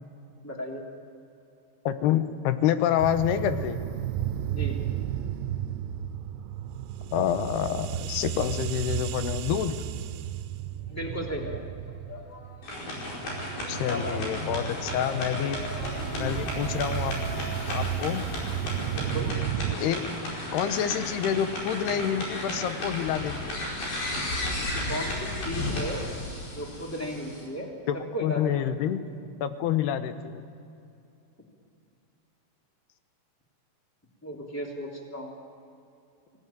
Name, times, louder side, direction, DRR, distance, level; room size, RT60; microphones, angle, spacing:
voice 1, 0.4-0.8 4.5-4.8 10.9-11.7 13.8-14.2 16.0-16.3 18.9-19.3 19.7-20.0 24.6-26.0 26.5-28.5 34.2-35.3, equal, 5° left, 0 dB, 2.4 m, -35 dB
voice 2, 1.9-3.8 7.1-9.8 13.7-15.6 16.2-17.1 17.7-18.2 19.8-20.0 20.5-23.6 27.9-29.0 29.4-30.4, left 10 dB, 80° left, 10 dB, 3.0 m, -27 dB
sound 1, 3.0-19.8, right 11 dB, 90° right, 2.9 m, -33 dB
sound 2, 9.9-11.1 11.4-19.2, left 1 dB, 20° left, 2.8 m, -45 dB
sound 3, 12.6-27.4, left 1 dB, 60° left, 6.9 m, -34 dB
25.0 x 18.0 x 9.1 m, 2.6 s
omnidirectional pair, 4.8 m